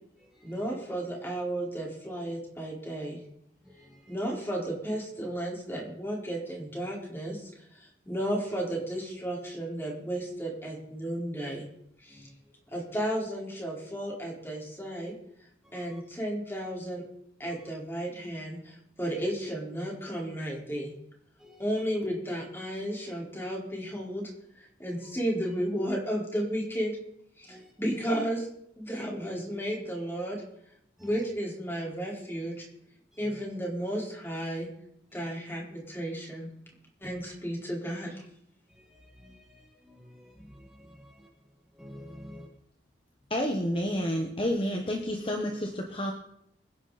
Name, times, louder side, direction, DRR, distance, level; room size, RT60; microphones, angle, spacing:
voice 1, 0.4-3.2 4.1-11.7 12.0-12.3 12.7-15.1 15.7-17.0 17.4-20.9 21.6-24.3 24.6-26.9 27.4-28.5 28.8-30.4 31.0-32.7 33.2-34.7 35.1-36.5 37.0-38.2, equal, 15° left, 4.7 m, -33 dB
voice 2, 39.2-39.6 39.9-41.3 41.8-42.5, equal, 5° right, 2.2 m, -49 dB
voice 3, 43.3-46.1, equal, 30° left, 1.4 m, -29 dB
25.5 x 10.5 x 4.3 m
head